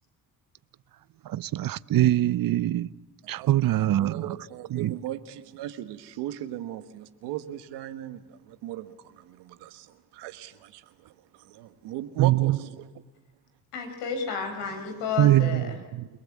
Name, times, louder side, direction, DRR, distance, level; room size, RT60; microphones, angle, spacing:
voice 1, 1.3-2.9 3.3-4.4 4.7-5.0 12.2-12.6 15.2-15.6 15.9-16.1, right 14 dB, 60° right, 0.7 m, -23 dB
voice 2, 3.4-10.8 11.4-12.9, right 13 dB, 85° right, 1.4 m, -37 dB
voice 3, 13.7-15.8, left 5 dB, 90° left, 4.5 m, -31 dB
28.5 x 19.0 x 8.5 m
supercardioid pair, 60°, 40 cm